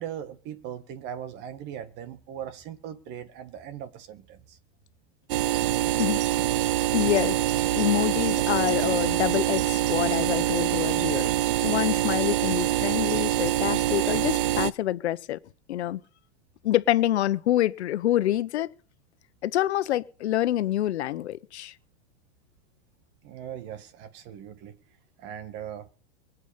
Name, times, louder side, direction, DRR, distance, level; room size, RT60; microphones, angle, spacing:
voice 1, 0.0-4.6 23.2-24.8 25.2-25.9, right 9 dB, 30° right, 1.9 m, -39 dB
sound 1, 5.3-14.7, right 14 dB, 55° right, 0.7 m, -25 dB
voice 2, 6.9-7.5 7.7-11.3 11.6-15.4 15.7-16.0 16.6-18.7 19.4-21.7, left 13 dB, 75° left, 1.3 m, -26 dB
24.0 x 8.4 x 5.3 m
supercardioid pair, 160°, 33 cm